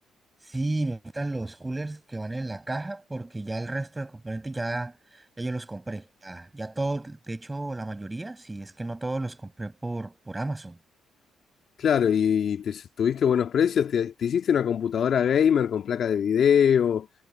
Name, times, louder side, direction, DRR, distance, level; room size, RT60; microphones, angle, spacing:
voice 1, 0.4-10.8, right 2 dB, 15° right, 7.4 m, -33 dB
voice 2, 11.8-17.1, left 8 dB, 60° left, 2.3 m, -23 dB
cardioid pair, 90°, 0 cm